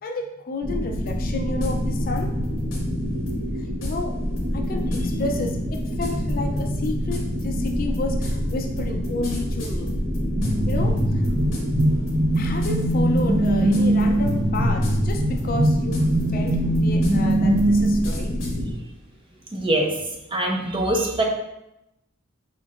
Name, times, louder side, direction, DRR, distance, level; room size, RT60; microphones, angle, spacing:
voice 1, 0.0-2.3 3.8-4.2 4.5-10.0 10.7-11.2 12.4-18.3, left 2 dB, 45° left, 4 dB, 0.3 m, -31 dB
sound 1, 0.6-18.7, equal, 90° right, 1.2 m, -26 dB
sound 2, 1.1-1.2 1.6-1.7 2.2-2.8 3.3-3.4 3.8-3.9 4.4-10.7 11.0-11.8 12.1-12.4 12.6-12.9 13.2-14.0 14.3-15.1 15.4-18.5, left 1 dB, 65° left, 1.1 m, -38 dB
sound 3, 10.4-18.0, right 1 dB, 50° right, 1.2 m, -22 dB
voice 2, 19.5-19.9 20.3-21.2, right 1 dB, 25° right, 1 dB, 0.5 m, -23 dB
4.3 x 4.2 x 2.4 m, 0.88 s
head